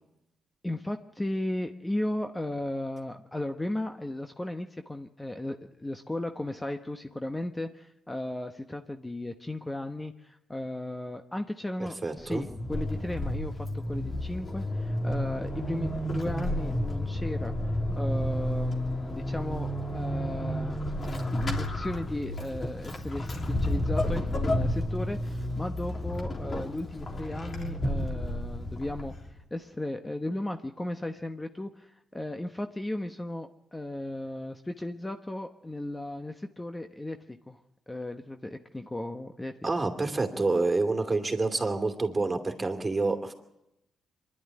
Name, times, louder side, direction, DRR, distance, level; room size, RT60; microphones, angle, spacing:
voice 1, 0.6-19.7 19.9-20.8 21.3-29.1 29.5-37.6 37.9-39.9, left 1 dB, 15° left, 6 dB, 1.1 m, -35 dB
voice 2, 12.0-12.4 39.6-43.3, right 3 dB, 25° right, 5 dB, 2.7 m, -28 dB
Vehicle / Accelerating revving vroom / Squeak, 12.2-29.4, left 1 dB, 45° left, 3.2 m, -31 dB
23.5 x 11.5 x 9.8 m, 0.90 s
supercardioid pair, 65°, 0 cm